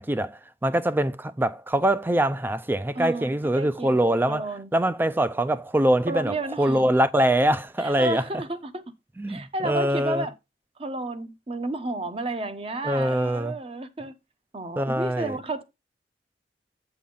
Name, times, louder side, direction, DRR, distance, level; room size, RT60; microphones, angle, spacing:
voice 1, 0.0-8.2 9.2-10.3 12.8-13.5 14.8-15.4, right 1 dB, 10° right, 0.4 m, -24 dB
voice 2, 2.9-4.7 6.1-6.9 7.8-8.8 9.3-10.3 10.8-14.1 14.5-15.6, right 1 dB, 30° right, 0.9 m, -32 dB
8.5 x 5.6 x 3.9 m
head